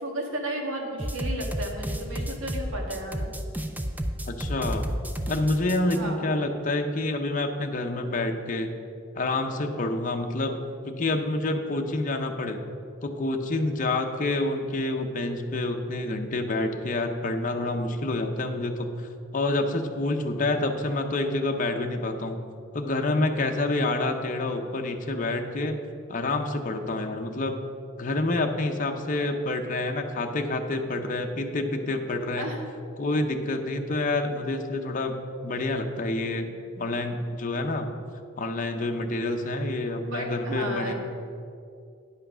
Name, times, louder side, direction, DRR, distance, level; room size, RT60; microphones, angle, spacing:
voice 1, 0.0-3.3 5.9-6.2 32.4-32.6 40.1-40.9, right 1 dB, 85° right, 0 dB, 1.8 m, -33 dB
sound 1, 1.0-6.0, equal, 10° right, 0.5 m, -31 dB
voice 2, 4.3-4.8 5.3-8.7 9.2-10.5 10.8-12.6 13.0-22.4 22.7-25.8 26.1-27.6 28.0-32.5 33.0-35.2 35.4-37.9 38.4-40.9, left 2 dB, 40° left, 4 dB, 0.7 m, -28 dB
9.6 x 5.7 x 6.1 m, 2.4 s
head